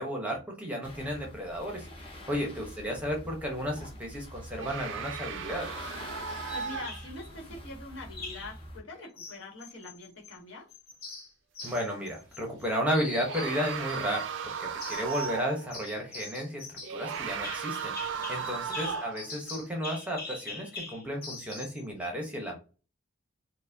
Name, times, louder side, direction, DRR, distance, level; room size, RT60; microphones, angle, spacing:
voice 1, 0.0-5.7 11.6-22.6, equal, 5° right, 0 dB, 0.8 m, -33 dB
sound 1, 0.8-8.8, equal, 25° left, 0.8 m, -46 dB
sound 2, 4.6-7.4 11.6-11.7 13.0-15.7 16.8-19.3, right 6 dB, 60° right, 0.4 m, -36 dB
sound 3, 4.9-5.3 6.5-7.3 8.1-8.5 9.2-10.4 10.7-12.6 12.9-14.3 14.8-15.4 15.7-21.8, left 3 dB, 45° left, 1.1 m, -43 dB
voice 2, 6.1-10.7 18.2-18.6, left 2 dB, 65° left, -1 dB, 1.4 m, -45 dB
4.6 x 2.2 x 2.7 m, 0.34 s
head